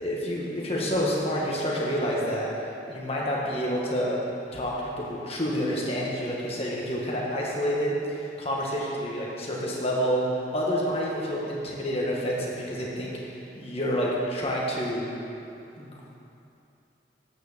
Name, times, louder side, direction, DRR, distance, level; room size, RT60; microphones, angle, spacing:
voice 1, 0.0-2.5 2.9-4.2 4.5-15.0 15.7-16.2, equal, 35° left, -4 dB, 1.6 m, -28 dB
8.7 x 6.3 x 6.7 m, 2.7 s
head